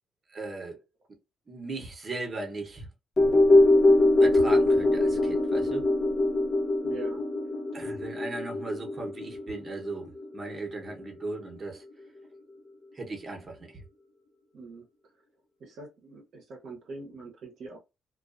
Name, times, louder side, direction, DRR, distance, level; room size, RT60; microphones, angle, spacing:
voice 1, 0.3-0.8 1.5-2.9 4.2-5.9 7.7-11.8 12.9-13.8, right 3 dB, 35° right, 0.9 m, -37 dB
sound 1, 3.2-11.6 11.9-12.0, left 2 dB, 40° left, 0.7 m, -23 dB
voice 2, 6.8-7.2 14.5-14.8 15.6-17.8, right 3 dB, 65° right, 0.7 m, -43 dB
2.3 x 2.3 x 2.4 m
cardioid pair, 90°, 0 cm